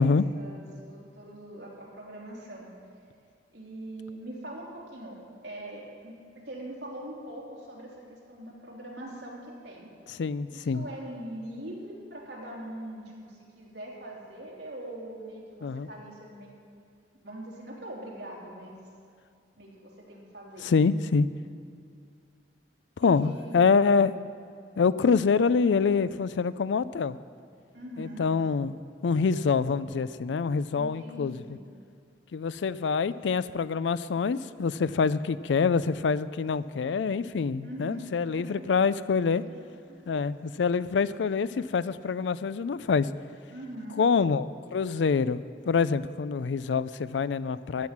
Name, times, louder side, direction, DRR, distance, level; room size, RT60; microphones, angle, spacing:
voice 1, 0.0-2.7 3.5-9.9 10.5-16.5 17.2-18.8 19.6-20.7 23.0-23.6 27.7-28.3 30.7-31.6 37.6-38.0 38.4-38.7 39.4-39.6 39.9-40.2 43.5-44.0, right 1 dB, 65° right, -4 dB, 3.3 m, -42 dB
voice 2, 10.1-10.8 15.6-15.9 20.6-21.3 23.0-24.1 24.8-27.2 28.0-31.6 32.3-39.4 40.1-43.1 44.0-47.9, left 5 dB, 90° left, 16 dB, 0.4 m, -26 dB
14.5 x 9.7 x 6.0 m, 2.4 s
head